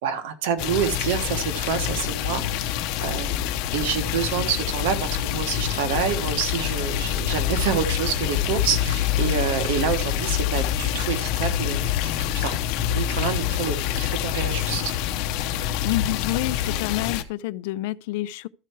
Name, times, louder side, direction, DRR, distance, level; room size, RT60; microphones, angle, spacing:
voice 1, 0.0-12.6 12.9-14.9, right 8 dB, 90° right, 1.4 m, -28 dB
sound 1, 0.6-17.2, left 11 dB, 65° left, 0.8 m, -26 dB
voice 2, 15.8-18.5, left 17 dB, 85° left, 0.4 m, -28 dB
13.5 x 4.6 x 4.6 m
cardioid pair, 145°, 0 cm